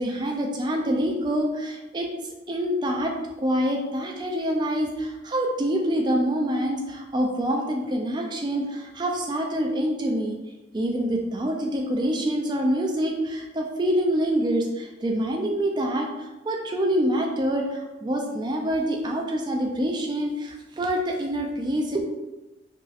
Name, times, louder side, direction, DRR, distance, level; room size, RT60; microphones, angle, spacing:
voice 1, 0.0-2.1 2.5-10.4 10.7-22.0, equal, 20° right, 1 dB, 0.3 m, -26 dB
3.0 x 2.8 x 2.3 m, 1.1 s
head